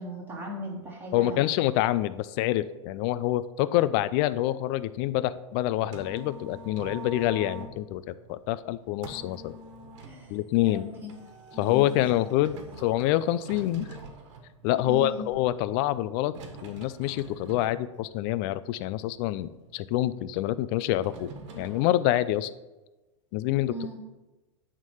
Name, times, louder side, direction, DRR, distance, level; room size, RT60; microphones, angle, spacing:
voice 1, 0.0-1.5 10.0-10.9 11.5-12.0 14.9-15.2 23.7-24.0, right 1 dB, 10° right, -5 dB, 2.9 m, -38 dB
voice 2, 1.1-9.6 10.3-10.9 11.6-13.9 14.6-16.3 16.6-21.3 21.6-22.5 23.3-23.7, left 14 dB, 50° left, 16 dB, 0.5 m, -26 dB
sound 1, 5.5-21.9, right 2 dB, 65° right, 1.5 m, -46 dB
9.0 x 3.7 x 6.4 m, 1.1 s
hypercardioid pair, 110°, 16 cm